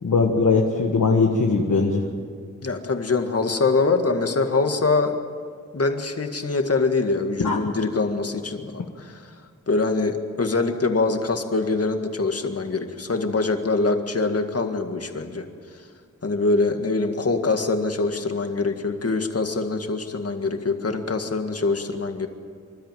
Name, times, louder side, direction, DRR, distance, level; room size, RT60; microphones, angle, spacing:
voice 1, 0.0-2.0 7.4-7.6, left 4 dB, 70° left, 1 dB, 1.7 m, -20 dB
voice 2, 2.6-5.2 5.7-9.2 9.7-15.5 16.2-22.3, left 3 dB, 50° left, 5 dB, 1.9 m, -24 dB
26.5 x 13.0 x 9.3 m, 2.1 s
wide cardioid pair, 80°, 31 cm